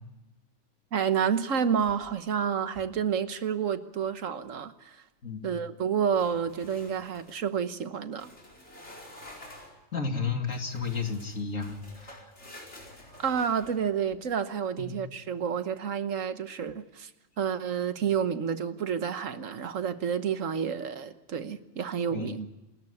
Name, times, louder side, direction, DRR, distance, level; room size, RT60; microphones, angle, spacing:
voice 1, 0.9-5.0 5.4-8.3 13.2-17.1 17.4-22.5, right 7 dB, 75° right, 1.5 m, -29 dB
sound 1, 1.8-2.3 2.6-3.0 6.1-7.4 8.1-9.8 10.5-14.4, left 1 dB, 60° left, 5.0 m, -50 dB
voice 2, 5.2-5.6 9.9-12.3 14.8-15.1 22.1-22.4, left 5 dB, 85° left, 3.0 m, -33 dB
28.5 x 13.5 x 8.5 m
omnidirectional pair, 1.3 m